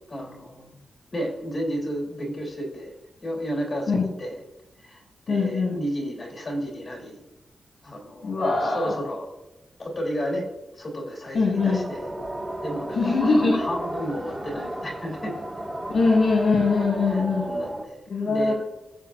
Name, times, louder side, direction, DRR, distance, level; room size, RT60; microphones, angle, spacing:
voice 1, 0.1-0.8 1.1-2.9 3.2-4.4 4.8-7.2 7.8-9.3 9.8-10.5 10.7-12.1 12.6-15.4 17.0-18.5, equal, 35° left, -1 dB, 3.2 m, -32 dB
voice 2, 5.3-5.8 8.2-8.9 11.3-11.8 13.0-13.5 15.9-17.5 18.1-18.5, left 3 dB, 65° left, -6 dB, 4.4 m, -22 dB
sound 1, 11.6-17.8, right 1 dB, 10° right, 2.0 m, -34 dB
22.0 x 7.6 x 2.5 m, 0.99 s
wide cardioid pair, 170°, 0 cm